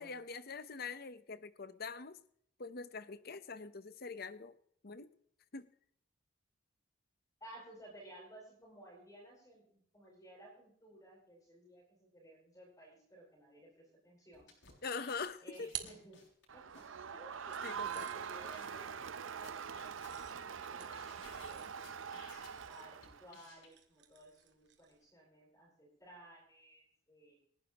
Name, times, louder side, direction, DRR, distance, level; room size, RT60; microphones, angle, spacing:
voice 1, 0.0-2.2 2.6-4.6 4.8-5.1 5.5-5.7 14.8-15.7 17.6-18.1, left 4 dB, 50° left, 13 dB, 0.9 m, -44 dB
voice 2, 7.4-14.6 15.4-16.2 16.5-22.1 22.7-27.4, right 1 dB, 15° left, -4 dB, 7.5 m, -57 dB
sound 1, 14.3-16.4 16.7-16.9 17.3-17.4 17.6-17.8 18.2-18.3 18.5-19.0 19.4-20.7 20.9-22.6 23.0-23.7, left 4 dB, 70° left, 6.3 m, -59 dB
sound 2, 15.3-16.8 17.5-25.1, right 11 dB, 60° right, 1.9 m, -53 dB
Crowd, 16.5-23.3, right 7 dB, 90° right, 0.7 m, -44 dB
29.5 x 11.5 x 3.0 m, 0.66 s
head